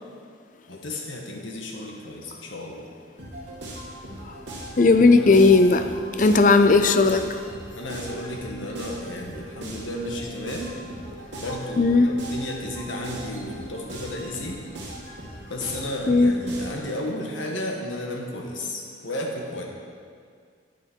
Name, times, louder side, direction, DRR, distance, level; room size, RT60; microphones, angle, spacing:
voice 1, 0.7-2.8 5.1-5.4 6.3-6.6 7.7-10.8 11.4-14.7 15.5-19.6, left 1 dB, 90° left, 0 dB, 1.6 m, -33 dB
sound 1, 3.2-16.9, right 1 dB, 65° right, 2.2 m, -39 dB
voice 2, 4.8-7.3 11.8-12.1 16.1-16.4, left 3 dB, 40° left, 9 dB, 0.5 m, -16 dB
10.5 x 8.5 x 4.5 m, 2.1 s
head